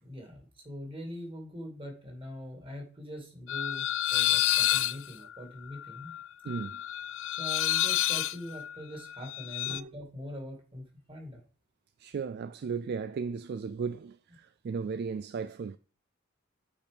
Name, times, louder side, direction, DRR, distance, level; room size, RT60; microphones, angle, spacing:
voice 1, 0.0-6.1 7.3-11.4, equal, 25° right, 2.3 m, -43 dB
sound 1, 3.5-9.8, left 14 dB, 65° left, 0.3 m, -29 dB
voice 2, 6.4-6.8 9.7-10.0 12.0-15.8, right 5 dB, 50° right, 0.3 m, -36 dB
8.6 x 4.4 x 5.1 m
head